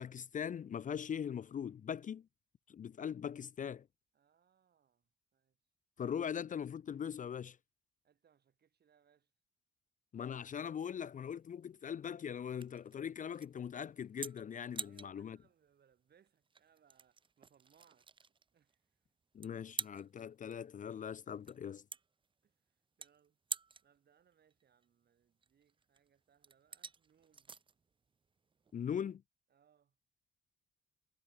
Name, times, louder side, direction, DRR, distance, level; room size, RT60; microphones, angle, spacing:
voice 1, 0.0-2.3 2.7-3.9 6.0-7.6 10.1-15.4 19.3-21.8 28.7-29.2, left 8 dB, 40° left, 0.6 m, -41 dB
voice 2, 4.1-5.6 8.0-9.3 14.8-18.1 18.5-18.8 22.4-22.5 23.0-23.4 23.8-27.6 29.5-29.9, right 8 dB, 55° right, 6.3 m, -71 dB
sound 1, 10.3-29.1, right 5 dB, 25° right, 0.6 m, -50 dB
cardioid pair, 90°, 20 cm